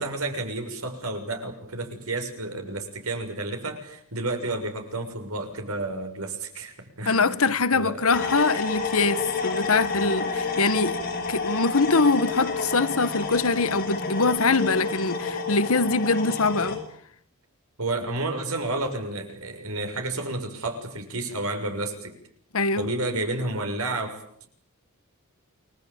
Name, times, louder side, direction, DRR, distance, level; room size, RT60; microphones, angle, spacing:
voice 1, 0.0-7.5 7.7-8.0 17.8-22.1 22.8-24.5, right 2 dB, 70° right, 6.8 m, -31 dB
voice 2, 7.0-11.0 11.3-16.8 22.5-22.9, left 3 dB, 65° left, 1.4 m, -23 dB
sound 1, 8.1-16.8, left 4 dB, 40° left, 7.8 m, -29 dB
29.5 x 21.5 x 9.0 m
head